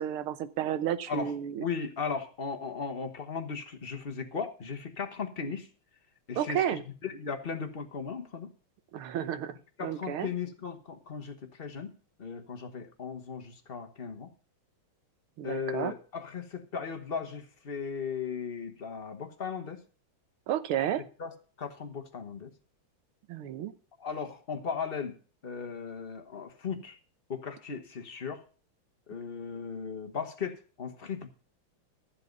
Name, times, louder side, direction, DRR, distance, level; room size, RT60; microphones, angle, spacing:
voice 1, 0.0-1.7 6.4-6.8 8.9-10.3 15.4-15.9 20.5-21.0 23.3-23.7, right 10 dB, 85° right, 13 dB, 1.8 m, -32 dB
voice 2, 1.6-5.7 6.3-8.5 9.8-11.9 12.2-14.3 15.4-19.8 21.2-22.5 24.0-25.2 25.4-27.0 27.3-28.4 29.1-31.3, left 6 dB, 35° left, 6 dB, 1.1 m, -37 dB
13.5 x 7.8 x 5.2 m, 0.38 s
omnidirectional pair, 2.3 m